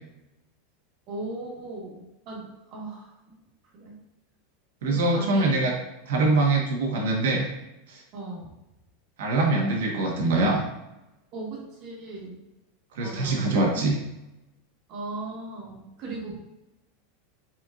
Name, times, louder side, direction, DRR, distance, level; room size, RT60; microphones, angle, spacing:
voice 1, 1.1-3.4 3.7-4.0 4.8-5.5 6.2-6.4 8.1-8.5 11.3-12.4 13.0-13.9 14.9-16.4, right 2 dB, 40° right, -3 dB, 1.5 m, -38 dB
voice 2, 4.8-5.7 6.1-7.5 7.9-8.0 9.2-10.6 12.9-14.0, right 2 dB, 85° right, 0 dB, 1.4 m, -23 dB
4.3 x 4.3 x 2.5 m, 0.93 s
supercardioid pair, 155°, 0 cm